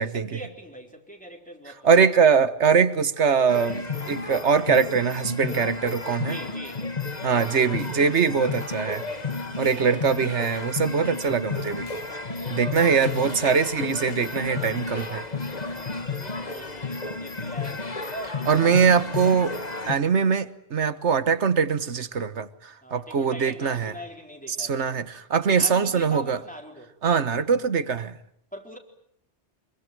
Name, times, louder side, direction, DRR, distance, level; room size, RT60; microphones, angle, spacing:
voice 1, 0.0-2.0 6.2-6.8 15.6-18.1 22.8-24.9 25.5-26.9 28.5-28.8, equal, 5° left, 4.0 m, -42 dB
voice 2, 1.8-6.4 7.2-9.0 9.6-11.9 12.5-15.2 18.3-19.6 19.9-23.9 24.6-26.4 27.0-28.2, right 6 dB, 75° right, 1.6 m, -22 dB
sound 1, 3.5-20.0, left 3 dB, 35° left, 1.8 m, -32 dB
25.0 x 23.0 x 9.2 m
omnidirectional pair, 1.2 m